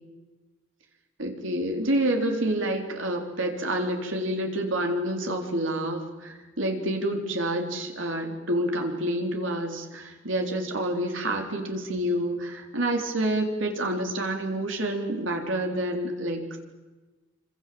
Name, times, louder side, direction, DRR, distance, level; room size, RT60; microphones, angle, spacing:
voice 1, 1.2-16.6, right 1 dB, 70° right, 3 dB, 3.9 m, -28 dB
27.0 x 25.5 x 7.8 m, 1.2 s
head